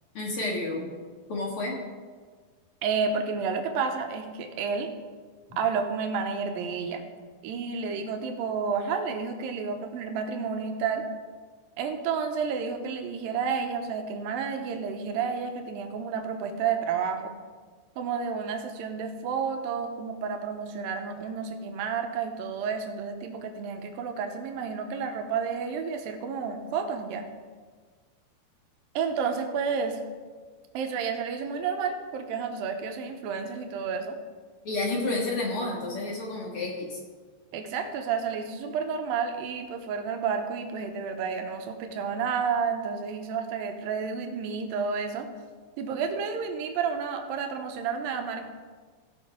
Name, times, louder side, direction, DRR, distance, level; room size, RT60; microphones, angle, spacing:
voice 1, 0.1-0.9 1.3-1.8 34.6-37.0, left 2 dB, 50° left, -2 dB, 1.7 m, -30 dB
voice 2, 2.8-4.9 5.6-7.0 7.4-11.0 11.8-17.3 18.0-27.3 29.0-30.0 30.7-34.2 37.5-45.3 45.8-48.5, right 6 dB, 75° right, 5 dB, 2.4 m, -30 dB
16.5 x 5.8 x 5.0 m, 1.5 s
omnidirectional pair, 4.6 m